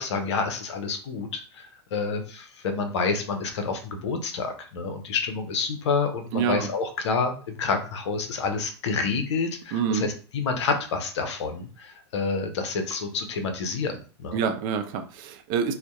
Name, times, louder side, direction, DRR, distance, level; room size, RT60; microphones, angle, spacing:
voice 1, 0.0-14.4, left 4 dB, 75° left, 5 dB, 0.6 m, -28 dB
voice 2, 6.3-6.7 9.7-10.1 14.3-15.7, right 7 dB, 50° right, 8 dB, 0.4 m, -26 dB
2.6 x 2.1 x 2.3 m, 0.39 s
hypercardioid pair, 100°, 15 cm